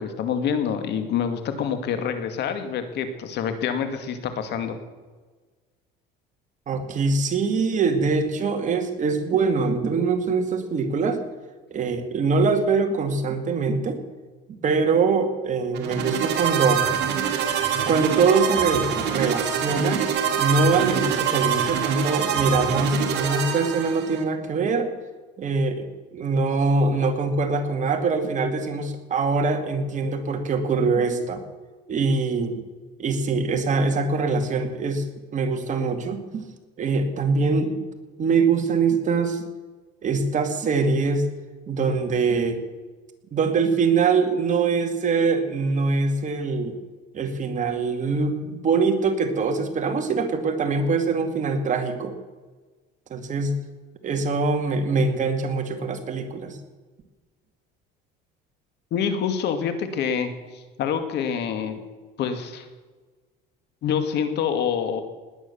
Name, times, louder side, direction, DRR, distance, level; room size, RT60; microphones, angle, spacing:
voice 1, 0.0-4.8 58.9-61.8 62.2-62.7 63.8-65.0, left 7 dB, 60° left, 8 dB, 2.2 m, -26 dB
voice 2, 6.7-11.2 11.7-14.0 14.6-16.8 17.9-20.1 20.4-24.9 25.4-31.4 31.9-32.6 33.0-35.0 35.3-36.4 36.8-37.8 38.2-39.5 40.0-41.3 41.7-42.6 43.3-46.8 47.1-52.1 53.1-53.6 54.0-56.6, right 4 dB, 40° right, 6 dB, 2.2 m, -23 dB
sound 1, 15.7-24.2, right 8 dB, 60° right, 2.7 m, -25 dB
19.5 x 9.5 x 7.0 m, 1.3 s
cardioid pair, 120°, 20 cm